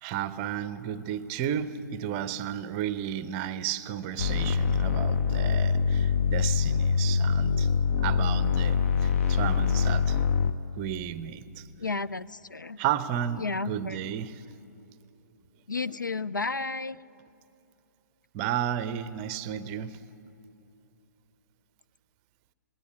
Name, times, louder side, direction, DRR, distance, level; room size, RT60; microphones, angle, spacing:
voice 1, 0.0-7.7 8.0-10.2 10.8-11.7 12.8-14.4 18.3-20.0, right 10 dB, 25° right, 0.6 m, -33 dB
sound 1, 4.2-10.5, left 6 dB, 45° left, 0.8 m, -24 dB
voice 2, 11.8-12.8 13.4-14.0 15.7-17.0, left 3 dB, 80° left, 0.5 m, -32 dB
20.0 x 16.5 x 9.5 m
figure-of-eight pair, 125°, 10 cm